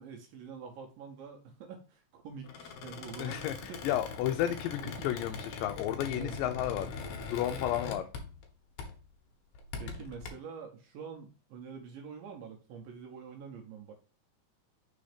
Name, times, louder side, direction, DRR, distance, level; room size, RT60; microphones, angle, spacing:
voice 1, 0.0-3.9 4.8-5.3 6.1-6.4 9.8-13.9, right 6 dB, 80° right, 2 dB, 2.7 m, -46 dB
Squeak, 2.4-8.5 8.8-9.1 9.5-10.3, left 5 dB, 65° left, 2.4 m, -42 dB
voice 2, 3.2-6.9 7.2-8.1, left 12 dB, 80° left, 5 dB, 2.2 m, -32 dB
5.6 x 4.1 x 4.9 m, 0.38 s
omnidirectional pair, 4.0 m